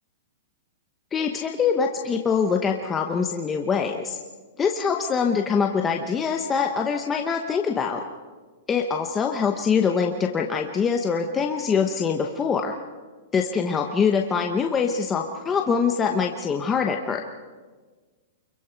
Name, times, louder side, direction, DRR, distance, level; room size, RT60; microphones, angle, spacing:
voice 1, 1.1-4.2 4.6-8.0 8.7-12.7 13.3-17.3, left 6 dB, 15° left, 3 dB, 0.9 m, -24 dB
28.0 x 23.0 x 4.6 m, 1.4 s
supercardioid pair, 170°, 0 cm